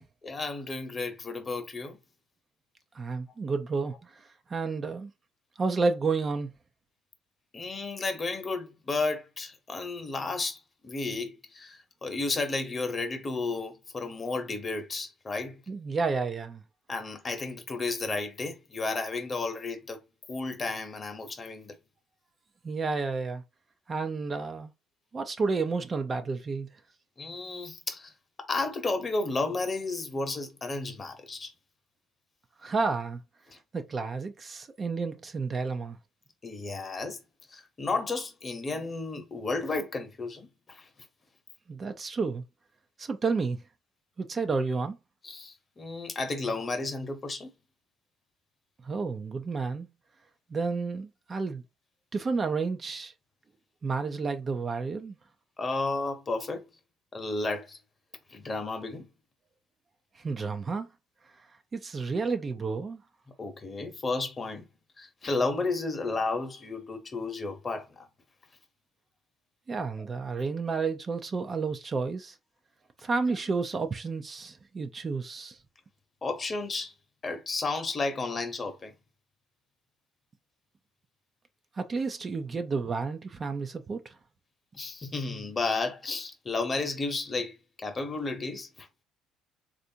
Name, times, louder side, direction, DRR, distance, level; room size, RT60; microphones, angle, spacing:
voice 1, 0.2-2.0 7.5-15.6 16.9-20.0 20.3-21.7 27.2-28.1 28.4-31.5 36.4-37.2 37.5-40.8 45.2-47.5 55.6-56.6 57.1-57.8 58.3-59.1 63.4-64.7 65.0-68.1 76.2-76.9 77.2-78.9 84.7-88.9, left 3 dB, 35° left, 0.9 m, -32 dB
voice 2, 2.9-5.1 5.6-6.5 15.7-16.6 22.6-23.4 23.9-24.7 25.1-26.7 32.6-33.2 33.7-36.0 41.7-42.4 43.0-43.6 44.2-45.0 48.8-49.9 50.5-51.6 52.1-53.1 53.8-55.2 60.2-60.9 61.7-63.0 69.7-72.3 73.0-75.6 81.8-84.1, right 4 dB, 35° right, 0.5 m, -31 dB
3.3 x 2.5 x 2.7 m
supercardioid pair, 70°, 0 cm